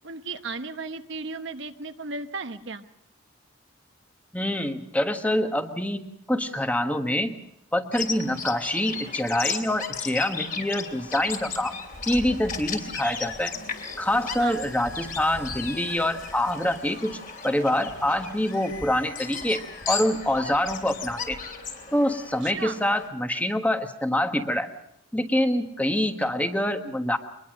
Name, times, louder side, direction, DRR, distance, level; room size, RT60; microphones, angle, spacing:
voice 1, 0.0-2.8 14.4-14.6 22.4-22.8, right 4 dB, 60° right, 8 dB, 0.9 m, -35 dB
voice 2, 4.3-7.3 7.7-11.8 12.1-13.5 14.0-17.2 17.4-19.6 19.9-21.4 21.9-24.7 25.1-27.2, left 1 dB, 5° left, 7 dB, 1.2 m, -25 dB
Bird vocalization bird call bird song, 7.9-23.1, left 6 dB, 40° left, 3.0 m, -36 dB
Musical instrument, 9.4-22.4, left 4 dB, 70° left, 6.3 m, -48 dB
23.0 x 21.0 x 6.3 m, 0.79 s
head